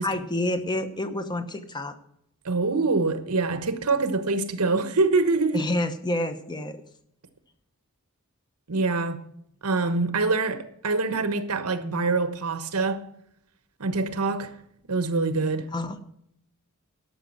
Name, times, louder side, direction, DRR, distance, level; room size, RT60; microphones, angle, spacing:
voice 1, 0.0-2.0 5.5-6.8 15.7-16.0, left 1 dB, 20° left, 0.9 m, -28 dB
voice 2, 2.4-5.6 8.7-9.3 9.6-13.0 13.8-14.5 14.9-15.7, right 3 dB, 90° right, 1.2 m, -25 dB
12.0 x 6.5 x 7.5 m
head